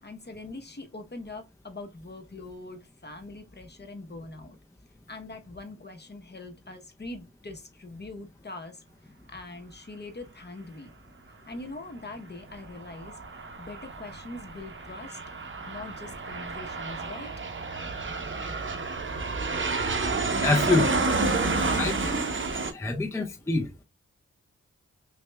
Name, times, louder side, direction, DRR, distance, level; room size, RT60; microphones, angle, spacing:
voice 1, 0.0-4.6 5.1-8.8 9.3-10.9 11.5-13.2 13.6-15.2 15.7-17.3, left 2 dB, 35° left, 0.9 m, -42 dB
Aircraft, 12.5-22.7, right 3 dB, 40° right, 0.8 m, -30 dB
voice 2, 20.4-21.0 21.7-22.3 22.7-23.8, left 3 dB, 10° left, 0.6 m, -26 dB
5.9 x 2.3 x 2.2 m
cardioid pair, 50°, 30 cm